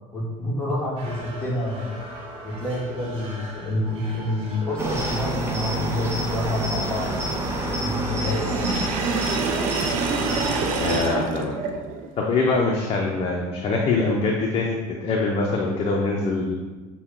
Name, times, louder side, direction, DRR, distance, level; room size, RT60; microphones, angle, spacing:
voice 1, 0.1-2.0 2.4-7.2 7.8-8.5, left 1 dB, 10° left, -6 dB, 1.3 m, -28 dB
sound 1, 1.0-11.3, right 2 dB, 40° right, 1.1 m, -41 dB
Cricket, 4.8-11.0, right 1 dB, 15° right, 0.6 m, -27 dB
Sink (filling or washing), 8.2-12.1, right 5 dB, 65° right, 0.5 m, -28 dB
voice 2, 10.8-11.6 12.2-16.6, left 3 dB, 40° left, -1 dB, 0.6 m, -23 dB
5.7 x 2.2 x 3.7 m, 1.2 s
cardioid pair, 115°, 15 cm